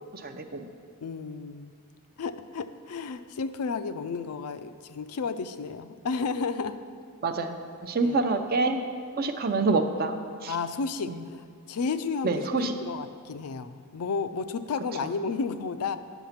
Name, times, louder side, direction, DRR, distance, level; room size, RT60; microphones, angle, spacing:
voice 1, 0.1-0.7 7.2-8.8 9.2-10.6 11.1-11.2 12.2-12.7 15.0-15.1, right 3 dB, 45° right, 7 dB, 0.5 m, -27 dB
voice 2, 1.0-1.7 2.2-6.8 8.0-8.2 10.5-16.0, left 4 dB, 85° left, 11 dB, 0.4 m, -32 dB
9.0 x 5.8 x 5.7 m, 2.1 s
head